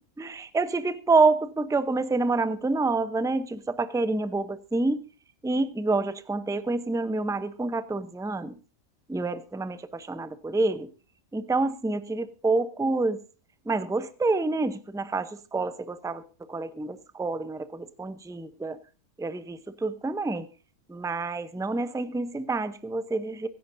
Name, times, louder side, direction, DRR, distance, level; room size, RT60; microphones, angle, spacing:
voice 1, 0.2-5.0 5.4-8.5 9.1-10.9 11.3-13.2 13.7-16.2 16.5-18.8 19.2-20.5 20.9-23.5, right 3 dB, 5° right, 0.4 m, -27 dB
24.0 x 11.0 x 2.7 m
omnidirectional pair, 1.5 m